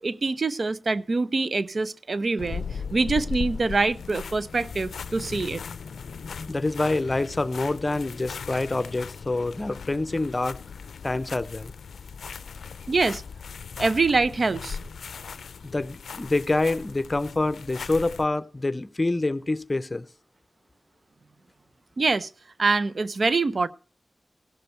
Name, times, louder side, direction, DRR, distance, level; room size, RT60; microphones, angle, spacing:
voice 1, 0.0-5.6 12.9-13.2 13.8-14.8 22.0-22.3 22.6-23.7, right 3 dB, 55° right, 0.5 m, -25 dB
sound 1, 2.4-18.3, left 6 dB, 90° left, 0.4 m, -38 dB
voice 2, 6.5-10.6 11.0-11.7 15.6-20.1, left 2 dB, 35° left, 0.6 m, -26 dB
16.5 x 6.8 x 4.4 m
cardioid pair, 50°, 0 cm